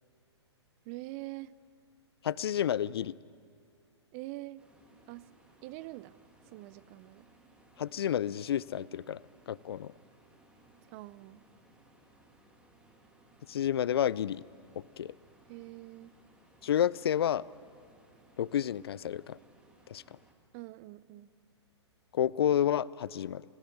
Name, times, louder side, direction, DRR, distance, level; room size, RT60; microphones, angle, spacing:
voice 1, 0.9-1.5 4.1-4.6 5.1-5.3 5.6-6.1 6.4-7.3 10.9-11.4 15.5-16.1 20.5-21.3, right 19 dB, 30° right, 19 dB, 0.5 m, -44 dB
voice 2, 2.2-3.1 7.8-9.2 9.5-9.9 13.5-14.4 15.0-15.1 16.6-17.5 18.4-19.4 19.9-20.0 22.1-23.4, left 10 dB, 60° left, 22 dB, 0.5 m, -30 dB
sound 1, 4.6-20.3, right 2 dB, 5° right, 2.2 m, -62 dB
19.5 x 17.5 x 9.6 m, 2.3 s
figure-of-eight pair, 120°, 15 cm